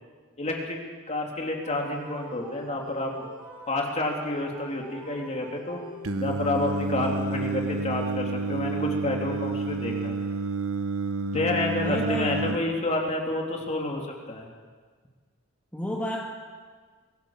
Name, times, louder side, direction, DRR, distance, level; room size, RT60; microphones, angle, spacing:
voice 1, 0.4-0.8 1.1-3.1 3.7-5.8 6.2-10.2 11.3-14.5, left 2 dB, 35° left, 0 dB, 3.3 m, -29 dB
sound 1, 1.6-6.5, right 1 dB, 15° right, 7.7 m, -45 dB
Singing, 6.0-12.6, right 3 dB, 80° right, 1.1 m, -29 dB
voice 2, 11.8-12.8 15.7-16.2, equal, 5° left, -3 dB, 2.2 m, -32 dB
23.5 x 15.5 x 7.4 m, 1.5 s
head